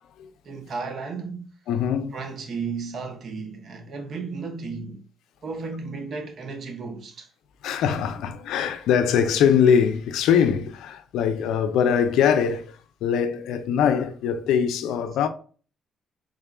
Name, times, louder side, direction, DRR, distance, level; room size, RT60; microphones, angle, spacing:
voice 1, 0.4-1.5 2.1-5.0 5.4-7.3, right 4 dB, 55° right, 0.7 m, -34 dB
voice 2, 1.7-2.1 7.6-15.3, left 7 dB, 85° left, 0.4 m, -22 dB
3.6 x 2.3 x 3.5 m
cardioid pair, 90°, 0 cm